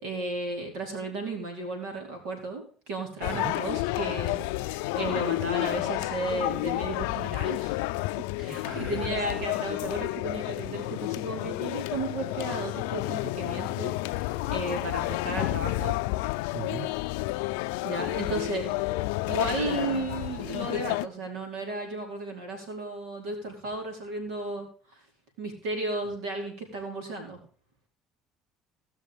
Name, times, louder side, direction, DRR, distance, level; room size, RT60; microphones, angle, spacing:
voice 1, 0.0-7.7 8.4-16.0 17.8-18.7 19.3-24.7 25.4-27.4, right 2 dB, 80° right, 2 dB, 4.6 m, -34 dB
sound 1, 3.2-21.1, left 19 dB, 85° left, 0.4 m, -30 dB
voice 2, 8.4-9.5 16.5-16.9, right 6 dB, 35° right, 6 dB, 1.6 m, -39 dB
17.0 x 6.4 x 5.3 m, 0.42 s
supercardioid pair, 85°, 0 cm